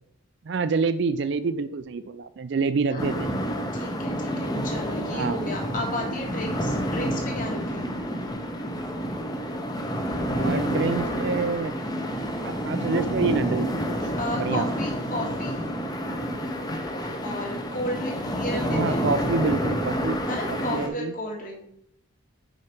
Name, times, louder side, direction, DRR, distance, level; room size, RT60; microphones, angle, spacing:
voice 1, 0.4-3.4 5.1-5.5 10.3-11.8 12.4-14.0 14.3-14.6 18.7-20.2 20.5-21.1, right 4 dB, 60° right, 12 dB, 0.4 m, -27 dB
sound 1, 3.0-20.9, equal, 20° left, 0.7 m, -29 dB
voice 2, 3.7-7.9 14.2-15.6 17.2-19.0 20.3-21.7, left 1 dB, 40° left, -1 dB, 1.6 m, -33 dB
6.3 x 5.0 x 4.4 m, 0.72 s
head